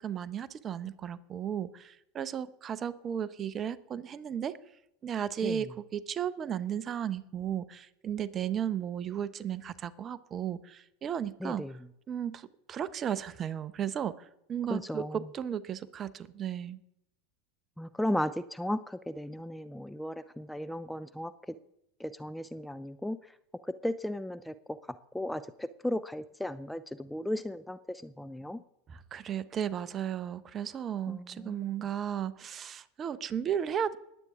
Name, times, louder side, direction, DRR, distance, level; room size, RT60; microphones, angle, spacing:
voice 1, 0.0-4.6 5.0-11.8 12.1-16.8 28.9-34.0, right 9 dB, 35° right, 16 dB, 0.7 m, -35 dB
voice 2, 11.4-11.7 14.7-15.2 17.8-21.6 22.0-23.2 23.8-24.5 25.1-28.6 31.1-31.7, left 1 dB, 5° left, 12 dB, 0.5 m, -35 dB
20.5 x 8.3 x 3.6 m, 0.80 s
hypercardioid pair, 90°, 0 cm